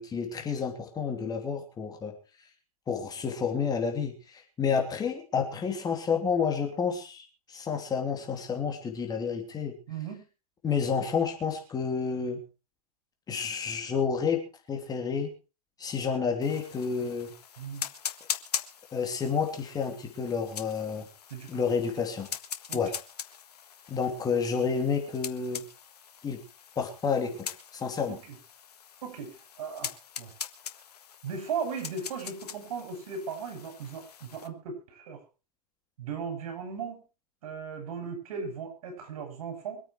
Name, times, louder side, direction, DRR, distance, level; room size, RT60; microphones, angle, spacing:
voice 1, 0.0-2.1 2.9-9.8 10.6-12.4 13.3-15.3 15.8-17.3 18.9-21.1 21.5-22.3 22.7-22.9 23.9-25.6 26.2-26.4 26.8-28.2, left 6 dB, 20° left, 3 dB, 3.0 m, -30 dB
voice 2, 9.9-10.2 17.6-17.9 21.3-21.6 22.7-22.8 28.1-28.2 29.0-29.9 30.2-30.3 31.2-35.2 36.0-37.0 37.4-39.8, right 6 dB, 60° right, 5 dB, 7.5 m, -37 dB
sound 1, 16.4-34.5, left 8 dB, 70° left, 1.6 m, -42 dB
24.0 x 9.0 x 4.7 m, 0.34 s
hypercardioid pair, 110°, 21 cm